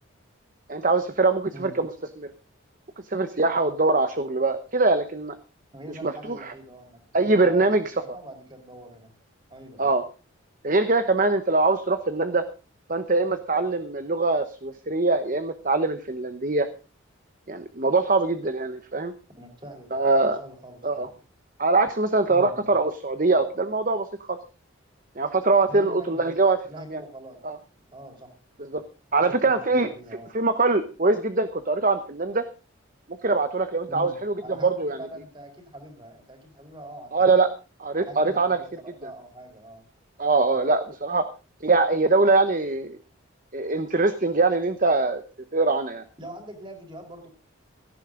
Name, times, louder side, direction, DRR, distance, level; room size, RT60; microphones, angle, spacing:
voice 1, 0.7-2.3 3.1-5.4 6.0-6.5 7.1-7.9 9.8-10.0 10.6-12.4 12.9-16.7 17.5-19.1 19.9-20.4 20.8-21.1 21.6-24.4 25.2-26.6 26.9-27.0 27.4-27.6 28.6-28.8 29.1-29.9 30.3-32.4 33.2-35.0 37.1-37.5 37.8-38.6 39.0-39.1 40.2-41.2 41.6-43.0 43.5-45.2 45.5-46.0, right 3 dB, 40° right, 9 dB, 0.9 m, -23 dB
voice 2, 5.7-7.7 7.9-9.1 9.5-9.9 19.4-20.0 20.4-21.1 22.3-22.7 25.7-26.3 26.6-27.4 27.9-28.3 29.2-30.3 33.9-34.2 34.4-37.3 38.1-39.8 40.4-40.6 46.2-47.3, equal, 25° right, 5 dB, 4.2 m, -43 dB
17.0 x 14.0 x 3.8 m, 0.33 s
head